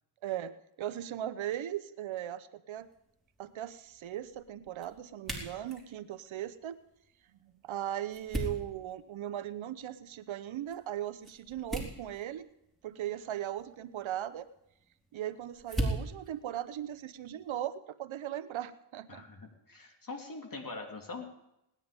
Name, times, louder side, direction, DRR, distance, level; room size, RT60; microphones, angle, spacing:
voice 1, 0.2-2.9 3.4-6.8 7.4-12.5 12.8-14.4 15.1-19.3, right 11 dB, 70° right, 13 dB, 0.9 m, -38 dB
sound 1, 2.7-17.6, right 1 dB, ahead, 4.7 m, -43 dB
voice 2, 19.1-21.3, left 3 dB, 40° left, 2 dB, 3.4 m, -43 dB
19.0 x 10.5 x 5.2 m, 0.84 s
cardioid pair, 70°, 48 cm